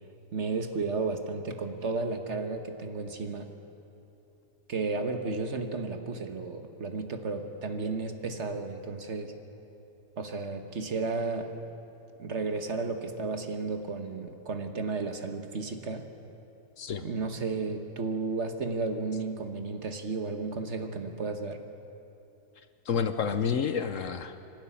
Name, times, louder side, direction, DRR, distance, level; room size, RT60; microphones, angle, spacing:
voice 1, 0.3-3.5 4.7-9.4 10.2-11.5 12.2-16.1 17.0-21.6, right 3 dB, 50° right, 6 dB, 1.5 m, -33 dB
voice 2, 16.8-17.1 22.9-24.5, left 6 dB, 60° left, 10 dB, 1.1 m, -29 dB
25.5 x 12.5 x 9.9 m, 2.9 s
omnidirectional pair, 1.6 m